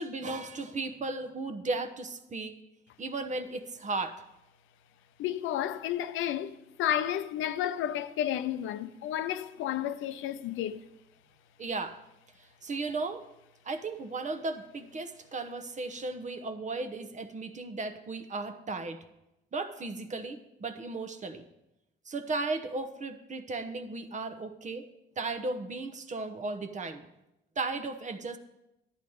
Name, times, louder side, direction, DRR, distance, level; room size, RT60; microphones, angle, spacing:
voice 1, 0.0-2.6 3.0-4.2 11.6-12.0 12.6-13.2 13.6-19.0 19.5-21.4 22.1-24.9 25.2-27.1 27.6-28.4, right 3 dB, 35° right, 0.9 m, -35 dB
voice 2, 5.2-10.8, left 11 dB, 85° left, 0.6 m, -32 dB
11.5 x 8.9 x 4.7 m
cardioid pair, 90°, 20 cm